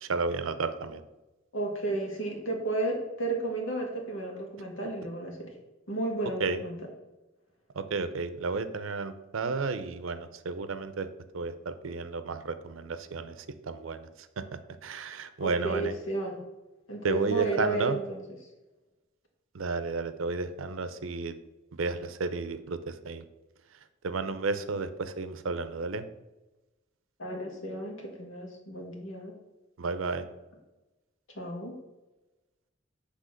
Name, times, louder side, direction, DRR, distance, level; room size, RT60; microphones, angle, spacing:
voice 1, 0.0-1.0 6.4-6.6 7.7-11.1 11.3-15.9 17.0-18.0 19.5-21.4 21.7-23.2 24.0-26.0 29.8-30.3, right 4 dB, 80° right, 11 dB, 0.6 m, -32 dB
voice 2, 1.5-5.6 5.9-6.8 15.4-16.4 16.9-18.2 27.2-29.3 31.3-31.8, right 2 dB, 75° left, 0 dB, 1.7 m, -33 dB
7.7 x 3.4 x 6.4 m, 1.1 s
head